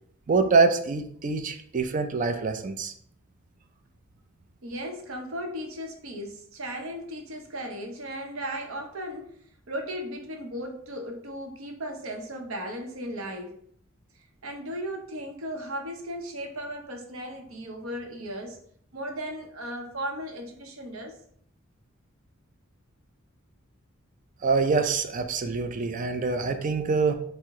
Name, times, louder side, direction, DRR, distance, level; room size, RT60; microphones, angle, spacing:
voice 1, 0.3-2.9 24.4-27.1, right 4 dB, 40° right, 7 dB, 0.4 m, -25 dB
voice 2, 4.6-9.3 9.7-13.6 14.4-18.6 18.9-21.1, equal, 80° right, 3 dB, 0.8 m, -36 dB
4.5 x 2.1 x 3.6 m, 0.64 s
head